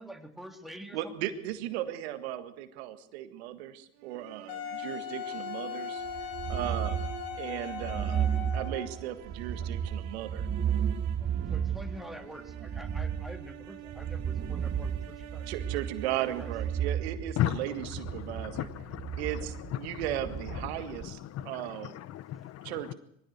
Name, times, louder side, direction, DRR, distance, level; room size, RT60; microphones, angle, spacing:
voice 1, 0.0-1.3 9.6-9.7 11.2-15.5 16.1-16.5, right 1 dB, ahead, 2.7 m, -46 dB
voice 2, 0.9-6.0 6.5-7.0 7.4-8.3 8.5-10.5 14.3-14.4 15.5-18.6 19.2-21.2 21.4-21.9 22.6-22.9, right 13 dB, 85° right, 1.7 m, -36 dB
sound 1, 4.0-18.1, right 13 dB, 65° right, 2.1 m, -48 dB
Wind instrument woodwind instrument, 4.5-9.0, left 10 dB, 85° left, 1.8 m, -39 dB
sound 2, 6.1-21.1, right 8 dB, 35° right, 1.6 m, -34 dB
voice 3, 17.4-22.9, left 13 dB, 50° left, 0.9 m, -36 dB
22.0 x 15.5 x 8.0 m
supercardioid pair, 80°, 31 cm